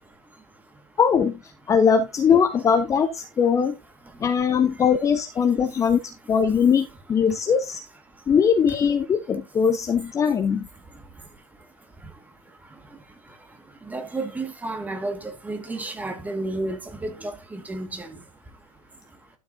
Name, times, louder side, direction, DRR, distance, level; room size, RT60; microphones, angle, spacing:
voice 1, 1.0-1.4 1.7-3.7 4.2-6.0 6.3-7.8 8.3-10.6, left 7 dB, 15° left, 0.8 m, -20 dB
voice 2, 13.9-18.1, right 2 dB, 10° right, 1.8 m, -31 dB
12.0 x 7.2 x 2.7 m
hypercardioid pair, 105°, 19 cm